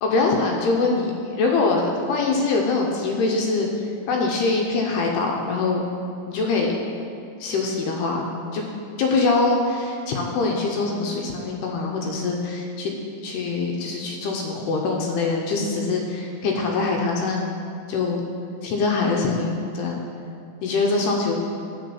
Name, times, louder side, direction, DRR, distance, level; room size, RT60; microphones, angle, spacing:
voice 1, 0.0-1.1 1.4-3.7 4.1-5.9 6.3-6.7 7.4-8.6 9.0-12.9 13.2-17.5 17.9-18.2 18.6-20.1 20.6-21.3, left 3 dB, 75° left, 0 dB, 2.5 m, -23 dB
8.2 x 5.5 x 7.0 m, 2.4 s
omnidirectional pair, 5.2 m